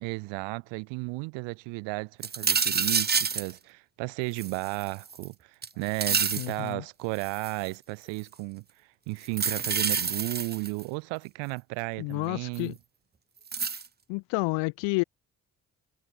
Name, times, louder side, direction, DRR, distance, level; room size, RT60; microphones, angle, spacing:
voice 1, 0.0-12.8, right 29 dB, 90° right, 0.7 m, -34 dB
sound 1, 2.2-3.5 4.4-5.3 5.6-6.5 7.2-7.7 9.3-10.8 12.6-12.7 13.5-13.9, right 6 dB, 25° right, 0.6 m, -28 dB
voice 2, 6.4-6.8 12.0-12.7 14.1-15.0, left 29 dB, 90° left, 0.6 m, -29 dB
hypercardioid pair, 40°, 43 cm